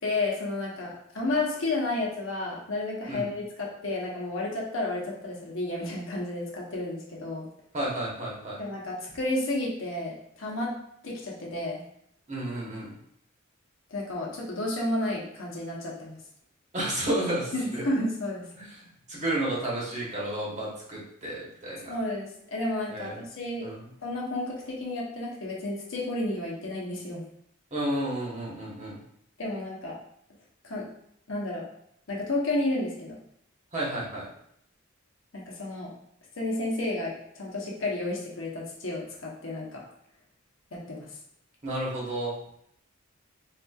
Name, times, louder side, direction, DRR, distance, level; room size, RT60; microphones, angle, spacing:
voice 1, 0.0-7.4 8.6-10.7 11.0-11.8 13.9-16.2 17.5-18.5 21.9-23.7 24.0-27.2 29.4-29.9 30.6-30.9 31.3-31.6 32.1-33.2 35.3-35.9 36.4-39.8 40.7-41.1, left 2 dB, 70° left, -3 dB, 0.9 m, -31 dB
voice 2, 7.7-8.6 12.3-12.9 16.7-17.8 18.6-18.7 19.1-22.0 22.9-23.2 23.6-23.9 27.7-29.0 33.7-34.3 41.6-42.3, right 1 dB, 35° right, -5 dB, 1.1 m, -31 dB
4.1 x 2.7 x 2.3 m, 0.71 s
head